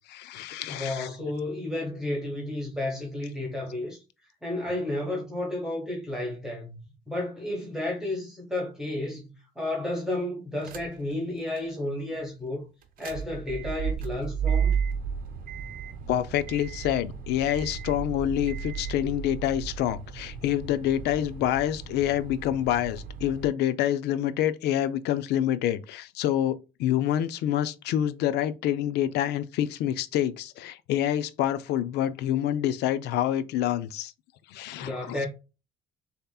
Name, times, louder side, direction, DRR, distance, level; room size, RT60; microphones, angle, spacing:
voice 1, 0.1-1.1 16.1-34.1 34.5-35.3, left 11 dB, 80° left, 0.5 m, -27 dB
voice 2, 0.7-4.0 4.4-12.6 13.0-14.8 34.8-35.3, left 1 dB, 5° right, 1.2 m, -32 dB
sound 1, 10.6-11.1 11.6-11.7 12.8-23.5, right 7 dB, 55° right, 0.8 m, -33 dB
6.6 x 2.9 x 2.3 m
cardioid pair, 110°, 17 cm